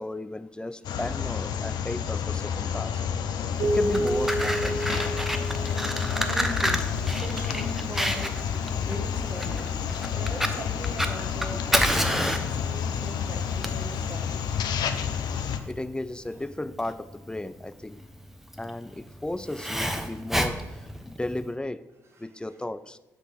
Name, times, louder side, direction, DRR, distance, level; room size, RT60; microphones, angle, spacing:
voice 1, 0.0-3.0 3.6-4.8 15.7-18.0 18.6-21.8 22.2-23.0, left 1 dB, 10° left, 14 dB, 0.4 m, -34 dB
sound 1, 0.8-15.6, left 7 dB, 70° left, 0.6 m, -30 dB
Keyboard (musical), 3.6-6.6, right 1 dB, 85° right, 0.6 m, -29 dB
Fire, 3.7-21.5, equal, 5° right, 0.8 m, -30 dB
voice 2, 6.2-8.4 8.8-9.8 10.1-14.5 22.1-22.6, right 2 dB, 35° right, 3 dB, 1.5 m, -41 dB
8.0 x 3.3 x 6.2 m, 1.0 s
hypercardioid pair, 50°, 7 cm